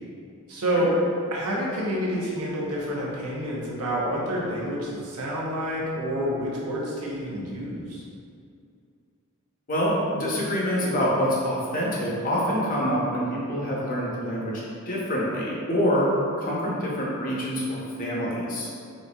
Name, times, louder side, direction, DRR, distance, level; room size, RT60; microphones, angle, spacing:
voice 1, 0.5-0.9 1.3-8.0, equal, 90° right, -5 dB, 0.8 m, -28 dB
voice 2, 9.7-16.1 16.4-18.7, equal, 40° left, -5 dB, 0.7 m, -26 dB
4.1 x 2.6 x 2.3 m, 2.4 s
head